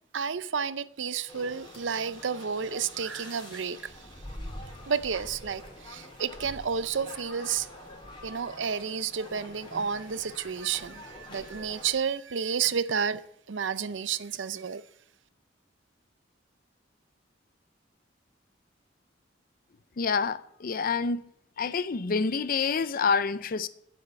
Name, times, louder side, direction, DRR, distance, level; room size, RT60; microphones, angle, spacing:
voice 1, 0.1-4.1 4.9-7.7 8.2-13.2 13.5-14.8, right 6 dB, 75° right, 0.6 m, -31 dB
sound 1, 1.3-11.9, left 1 dB, 25° left, 3.2 m, -46 dB
voice 2, 20.0-21.2 21.6-23.7, left 5 dB, 50° left, 0.5 m, -27 dB
8.9 x 7.8 x 8.8 m
head